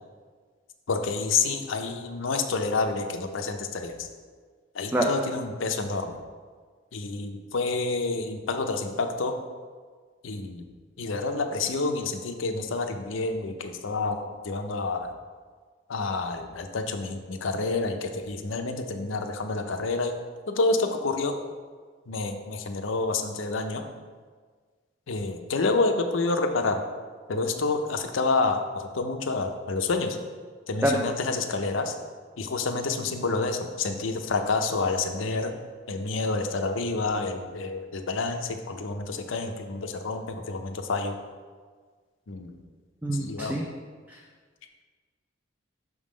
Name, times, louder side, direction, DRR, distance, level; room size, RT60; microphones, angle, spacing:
voice 1, 0.9-4.1 4.7-6.2 6.9-9.4 10.2-10.7 11.0-15.1 15.9-20.1 20.5-21.3 22.1-23.8 25.1-26.8 27.3-30.2 30.7-31.9 32.4-35.6 35.9-41.2 42.3-42.5 43.1-43.5, left 3 dB, 75° left, 6 dB, 0.6 m, -28 dB
voice 2, 43.0-43.6 44.1-44.2, right 1 dB, 10° right, 0 dB, 0.3 m, -25 dB
6.2 x 3.7 x 4.9 m, 1.5 s
head